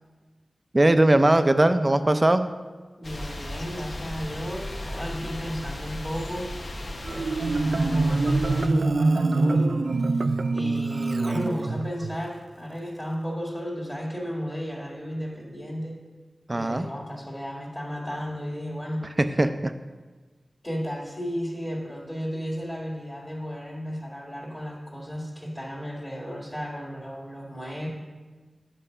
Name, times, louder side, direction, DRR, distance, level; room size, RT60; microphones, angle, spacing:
voice 1, 0.7-2.5 16.5-16.9 19.4-19.7, right 1 dB, 30° right, 9 dB, 0.5 m, -20 dB
sound 1, 3.0-8.7, left 1 dB, 70° left, 1.0 m, -35 dB
voice 2, 3.0-6.5 7.1-9.7 10.5-16.0 16.5-19.1 20.6-27.9, equal, 20° left, -5 dB, 1.8 m, -34 dB
Marimba xylophone, 7.0-12.2, right 3 dB, 80° right, 0.4 m, -24 dB
7.8 x 6.0 x 5.5 m, 1.3 s
wide cardioid pair, 75°, 0 cm